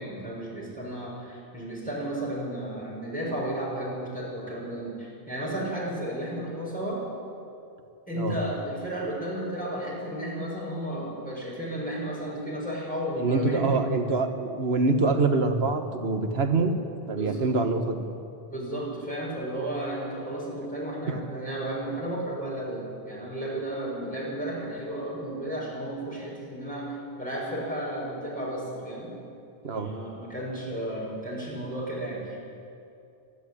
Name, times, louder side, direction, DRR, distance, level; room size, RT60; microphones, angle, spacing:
voice 1, 0.0-7.0 8.1-13.8 17.1-17.5 18.5-26.9 27.2-29.1 29.7-32.4, right 1 dB, 10° left, -5 dB, 6.6 m, -33 dB
voice 2, 13.2-16.8 17.1-18.0 21.1-21.2 29.6-29.9, right 3 dB, 80° right, 6 dB, 1.7 m, -25 dB
26.5 x 11.0 x 8.7 m, 2.5 s
omnidirectional pair, 1.0 m